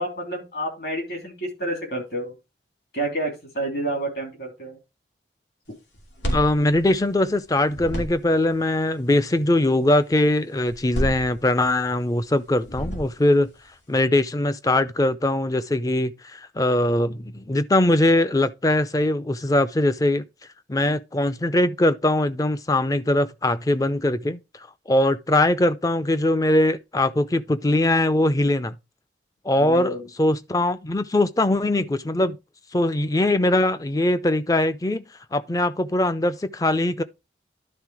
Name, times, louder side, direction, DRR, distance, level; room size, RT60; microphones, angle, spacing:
voice 1, 0.0-2.3 2.9-4.8 29.6-30.1, right 1 dB, 60° left, 3.2 m, -29 dB
sound 1, 5.9-7.4 7.7-8.5 10.6-11.9 12.6-13.4, right 1 dB, 85° left, 2.9 m, -30 dB
voice 2, 6.3-13.5 13.9-20.2 20.7-24.4 24.9-28.8 29.4-32.4 32.7-35.0 35.3-37.0, left 1 dB, 20° left, 0.4 m, -21 dB
11.0 x 3.7 x 4.8 m
head